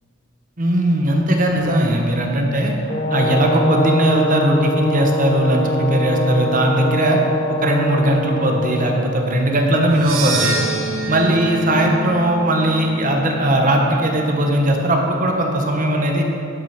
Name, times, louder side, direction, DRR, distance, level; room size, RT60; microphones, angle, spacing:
voice 1, 0.6-2.7 3.1-7.2 7.6-10.6 11.1-16.2, right 1 dB, 40° right, 1 dB, 1.2 m, -18 dB
Brass instrument, 2.9-9.0, left 1 dB, 30° left, 0.8 m, -23 dB
sound 1, 9.9-14.2, right 2 dB, 80° right, 1.2 m, -27 dB
11.5 x 6.2 x 5.9 m, 2.6 s
head